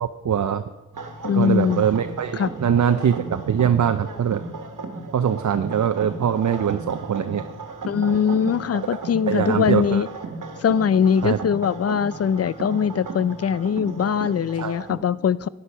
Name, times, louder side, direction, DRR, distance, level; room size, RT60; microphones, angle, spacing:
voice 1, 0.0-0.6 1.3-4.4 5.1-7.4 9.3-10.0 11.2-11.4 14.6-14.7, right 8 dB, 65° right, 0.6 m, -22 dB
sound 1, 0.9-15.0, right 3 dB, 85° right, 1.4 m, -35 dB
voice 2, 1.2-1.8 2.3-2.5 7.9-10.1 10.6-15.5, left 7 dB, 50° left, 0.5 m, -21 dB
12.0 x 9.9 x 5.5 m
cardioid pair, 65°, 31 cm